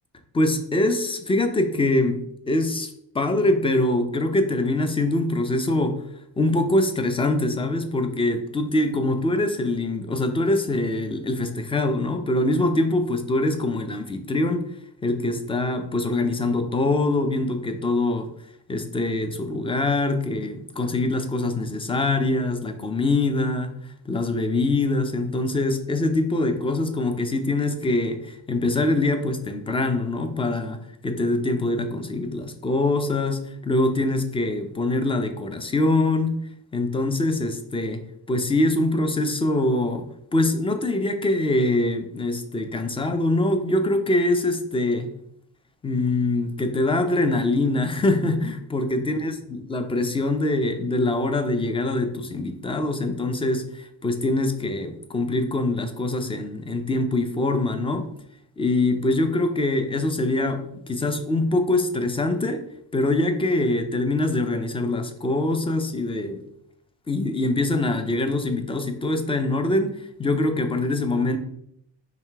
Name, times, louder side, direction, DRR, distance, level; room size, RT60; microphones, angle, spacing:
voice 1, 0.3-2.2 2.5-2.9 3.1-6.0 6.4-14.7 15.0-18.3 18.7-23.7 24.1-36.4 36.7-38.0 38.3-40.0 40.3-45.1 45.8-58.1 58.6-62.6 62.9-66.4 67.1-71.4, left 2 dB, 15° left, 7 dB, 0.3 m, -24 dB
4.8 x 3.2 x 3.4 m, 0.75 s
cardioid pair, 125°, 44 cm